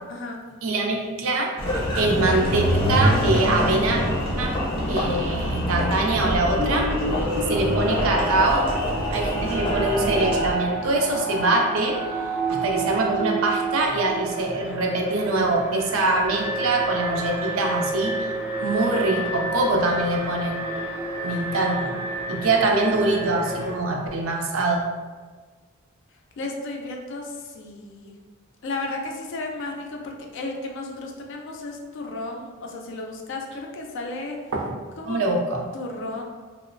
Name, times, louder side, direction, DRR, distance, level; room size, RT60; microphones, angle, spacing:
voice 1, 0.1-0.4 26.4-28.1 28.6-34.5 35.0-35.2 35.7-36.2, left 2 dB, 60° left, 1 dB, 0.4 m, -33 dB
voice 2, 0.6-4.0 4.4-4.6 4.9-7.0 7.5-8.7 9.1-12.0 12.5-18.3 18.6-20.6 21.2-21.9 22.3-24.9 34.5-34.7 35.1-35.6, right 2 dB, 75° right, 1 dB, 0.4 m, -23 dB
Engine, 1.6-10.5, equal, 25° left, 0.7 m, -25 dB
Alarm, 6.1-23.7, right 1 dB, 10° right, 0.4 m, -29 dB
2.8 x 2.0 x 2.5 m, 1.4 s
head